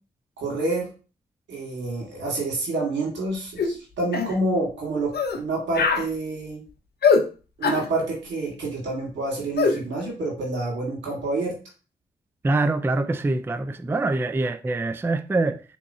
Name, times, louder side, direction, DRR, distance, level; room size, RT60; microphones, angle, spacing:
voice 1, 0.4-0.9 1.5-6.6 7.6-11.5, right 2 dB, 85° right, 1.4 m, -28 dB
sound 1, 3.6-3.7 4.1-4.3 5.1-5.4 5.7-6.1 7.0-7.2 7.6-7.9 9.6-9.8, left 5 dB, 60° left, 0.7 m, -21 dB
voice 2, 12.4-15.6, right 2 dB, 10° right, 0.3 m, -24 dB
3.6 x 3.0 x 2.6 m
supercardioid pair, 40°, 18 cm